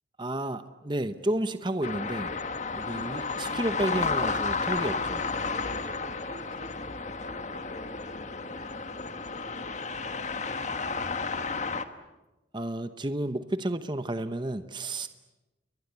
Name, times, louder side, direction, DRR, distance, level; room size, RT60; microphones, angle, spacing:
voice 1, 0.2-2.3 2.7-5.3 12.5-15.1, right 1 dB, 25° right, 10 dB, 0.9 m, -31 dB
sound 1, 1.8-11.8, left 4 dB, 40° left, 1.3 m, -32 dB
voice 2, 5.8-11.0, right 1 dB, 50° right, 1 dB, 4.8 m, -52 dB
29.0 x 23.0 x 8.2 m, 1.1 s
head